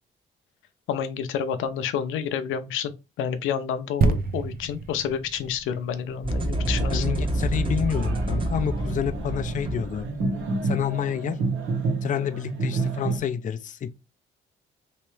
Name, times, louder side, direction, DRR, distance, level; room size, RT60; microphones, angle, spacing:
voice 1, 0.9-2.9 3.2-7.3, left 8 dB, 85° left, 0.6 m, -29 dB
sound 1, 4.0-7.6 8.2-8.3, right 4 dB, 50° right, 0.6 m, -28 dB
sound 2, 6.2-10.5, right 1 dB, 25° right, 1.0 m, -28 dB
sound 3, 6.5-13.2, right 3 dB, 85° right, 1.4 m, -30 dB
voice 2, 6.9-10.1 10.6-11.4 12.0-13.9, left 9 dB, 40° left, 0.5 m, -29 dB
3.2 x 3.1 x 3.1 m
cardioid pair, 90°, 20 cm